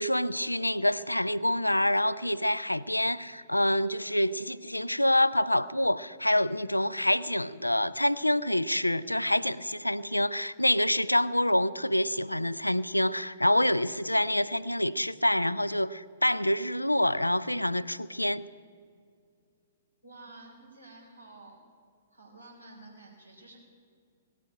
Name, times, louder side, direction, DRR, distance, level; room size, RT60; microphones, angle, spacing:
voice 1, 0.0-18.5, left 1 dB, 85° left, 17 dB, 0.4 m, -27 dB
voice 2, 20.0-21.6 22.1-23.6, right 2 dB, 90° right, -2 dB, 4.0 m, -50 dB
18.0 x 8.4 x 8.8 m, 2.2 s
figure-of-eight pair, 115°, 0 cm